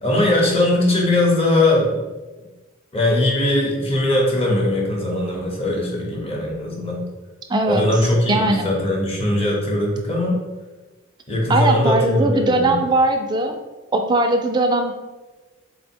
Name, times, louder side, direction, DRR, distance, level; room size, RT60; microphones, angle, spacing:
voice 1, 0.0-2.0 2.9-7.0 7.7-10.4 11.3-12.8, left 1 dB, 30° left, -1 dB, 0.8 m, -20 dB
voice 2, 7.5-7.8 8.3-8.7 11.5-13.6 13.9-14.9, right 2 dB, 20° right, 5 dB, 0.3 m, -19 dB
3.8 x 2.1 x 4.3 m, 1.2 s
head